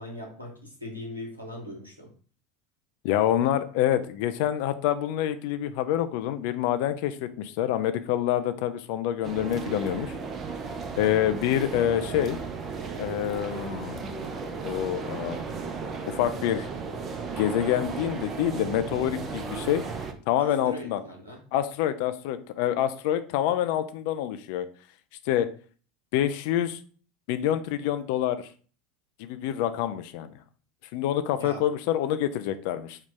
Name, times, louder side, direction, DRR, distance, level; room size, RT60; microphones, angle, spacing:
voice 1, 0.0-2.1 20.4-21.4 31.4-31.6, left 1 dB, 90° right, 0 dB, 0.9 m, -40 dB
voice 2, 3.0-10.1 11.0-12.4 13.0-14.3 14.6-15.5 16.1-16.7 17.4-19.8 20.3-21.0 21.5-24.7 25.3-25.5 26.1-26.8 27.3-28.5 29.2-30.4 30.9-33.0, left 11 dB, 55° left, 11 dB, 0.4 m, -27 dB
sound 1, 9.2-20.1, right 4 dB, 35° right, 0.6 m, -35 dB
4.2 x 2.4 x 3.7 m, 0.41 s
figure-of-eight pair, 75°, 0 cm